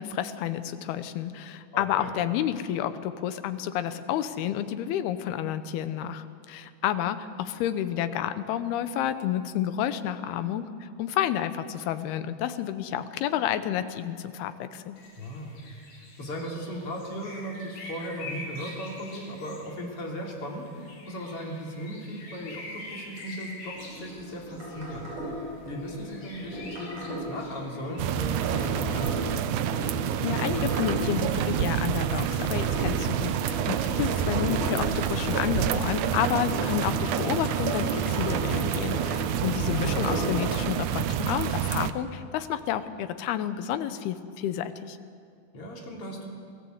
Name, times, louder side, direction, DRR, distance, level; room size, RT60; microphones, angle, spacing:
voice 1, 0.0-15.0 30.2-45.0, left 10 dB, 90° left, 11 dB, 2.9 m, -30 dB
voice 2, 1.7-2.1 15.2-15.6 16.2-25.1 25.4-29.4 39.7-40.0 45.5-46.3, equal, 40° left, -1 dB, 3.9 m, -37 dB
sound 1, 15.0-28.2, left 2 dB, 70° left, 5.4 m, -45 dB
sound 2, 23.7-40.6, equal, 45° right, 8.4 m, -36 dB
sound 3, 28.0-41.9, right 10 dB, 80° right, 1.8 m, -28 dB
27.0 x 17.5 x 8.0 m, 2.3 s
omnidirectional pair, 4.4 m